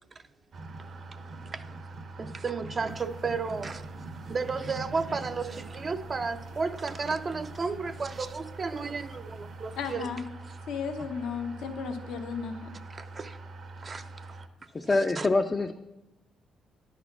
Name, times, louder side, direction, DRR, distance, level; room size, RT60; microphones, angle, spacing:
sound 1, 0.5-14.5, right 2 dB, 55° right, 0.8 m, -43 dB
voice 1, 2.2-3.8 4.3-10.1 13.0-13.4 13.8-14.0 15.2-15.3, right 4 dB, 35° right, 0.4 m, -33 dB
sound 2, 2.9-10.0, right 3 dB, 85° right, 1.2 m, -51 dB
voice 2, 9.8-10.2 10.7-12.7, left 6 dB, 85° left, 0.8 m, -34 dB
voice 3, 14.7-15.8, left 3 dB, 25° left, 0.4 m, -25 dB
10.5 x 4.1 x 6.0 m
cardioid pair, 90°, 0 cm